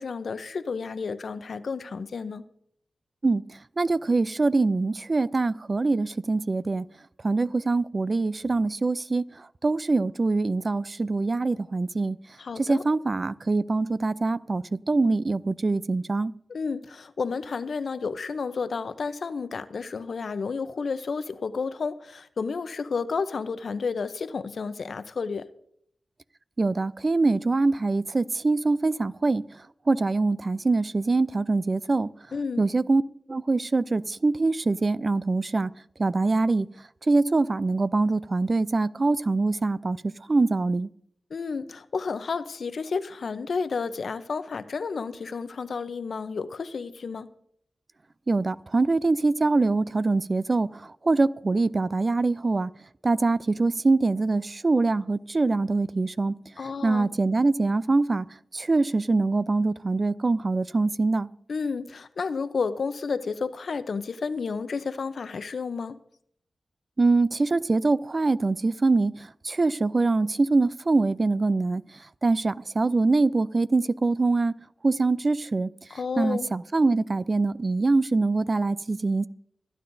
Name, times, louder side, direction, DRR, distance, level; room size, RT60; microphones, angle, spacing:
voice 1, 0.0-2.4 12.4-12.9 16.5-25.5 32.3-32.6 41.3-47.3 56.6-57.1 61.5-66.0 75.9-76.5, left 5 dB, 70° left, 0.6 m, -31 dB
voice 2, 3.8-6.9 7.2-12.2 12.6-16.3 26.6-29.4 29.9-32.1 32.6-33.0 33.3-35.7 36.0-36.7 37.1-40.0 40.3-40.9 48.3-52.7 53.0-56.3 56.8-58.3 58.5-61.3 67.0-71.8 72.2-74.5 74.8-75.7 76.2-79.3, right 3 dB, 40° right, 0.4 m, -24 dB
25.0 x 9.4 x 2.6 m
cardioid pair, 70°, 0 cm